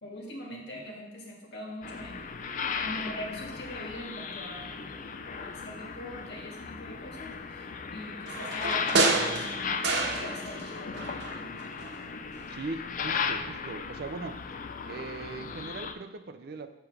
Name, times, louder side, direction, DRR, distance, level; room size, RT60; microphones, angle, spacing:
voice 1, 0.0-5.0 5.3-7.6 7.9-9.9 10.1-11.5, left 1 dB, 65° left, -1 dB, 1.7 m, -42 dB
sound 1, 1.8-15.9, left 5 dB, 45° left, 0.4 m, -36 dB
sound 2, 8.3-10.7 11.0-12.0 12.4-12.5, right 3 dB, 75° right, 1.1 m, -29 dB
voice 2, 12.5-14.4 14.9-16.7, right 3 dB, 60° right, 9 dB, 0.5 m, -39 dB
7.3 x 6.8 x 3.3 m, 0.92 s
head